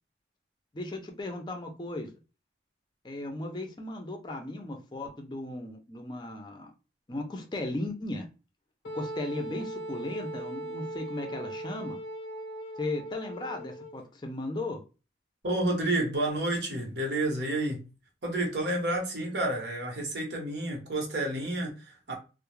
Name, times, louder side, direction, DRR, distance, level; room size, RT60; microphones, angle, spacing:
voice 1, 0.7-2.1 3.0-6.7 7.1-8.3 8.9-12.0 12.8-14.8, left 2 dB, 25° left, 0.4 m, -36 dB
Wind instrument woodwind instrument, 8.8-14.0, right 1 dB, 80° left, 0.5 m, -39 dB
voice 2, 15.4-17.9 18.2-22.1, right 1 dB, 75° right, 0.9 m, -30 dB
2.2 x 2.0 x 3.0 m
head